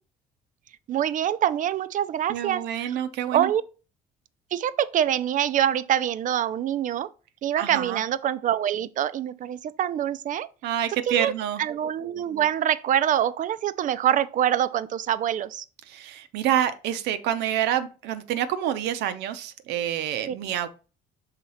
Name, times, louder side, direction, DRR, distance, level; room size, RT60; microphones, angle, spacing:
voice 1, 0.9-3.0 3.3-3.6 4.5-7.1 7.4-10.5 11.1-11.3 11.6-15.6 20.3-20.4, right 10 dB, 50° right, 0.5 m, -25 dB
voice 2, 2.3-3.5 7.6-8.0 10.6-11.6 15.9-20.7, right 10 dB, 85° right, 0.8 m, -27 dB
5.9 x 3.7 x 5.6 m
cardioid pair, 110°, 17 cm